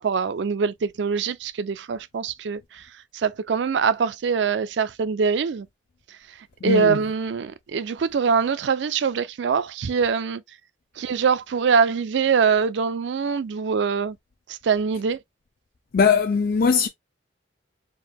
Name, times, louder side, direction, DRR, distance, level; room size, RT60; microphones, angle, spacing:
voice 1, 0.0-2.9 3.1-5.7 6.6-10.4 11.0-14.2 14.5-15.2, right 6 dB, 65° right, 0.4 m, -23 dB
voice 2, 6.6-7.0 15.9-16.9, left 6 dB, 50° left, 0.4 m, -20 dB
4.6 x 2.2 x 3.4 m
head